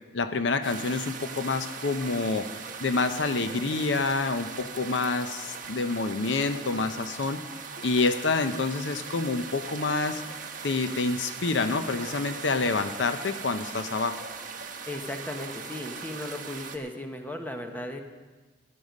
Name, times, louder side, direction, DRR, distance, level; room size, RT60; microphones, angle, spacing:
voice 1, 0.1-2.5 2.8-7.4 7.8-10.2 10.6-14.2, left 3 dB, 80° left, 9 dB, 0.7 m, -27 dB
sound 1, 0.6-16.8, right 5 dB, 45° right, 1.1 m, -40 dB
voice 2, 14.9-18.0, left 1 dB, 10° left, 4 dB, 1.1 m, -36 dB
15.0 x 11.0 x 5.3 m, 1.3 s
head